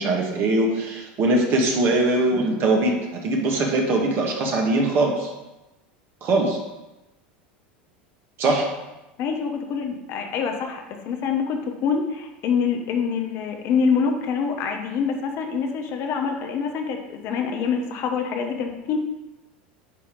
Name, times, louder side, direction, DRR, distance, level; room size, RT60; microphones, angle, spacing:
voice 1, 0.0-2.9 3.2-5.3 6.2-6.6 8.4-8.7, right 2 dB, 45° right, 0 dB, 1.9 m, -21 dB
voice 2, 9.2-19.0, left 6 dB, 55° left, 4 dB, 1.2 m, -25 dB
9.4 x 3.4 x 5.5 m, 1.0 s
hypercardioid pair, 95°, 5 cm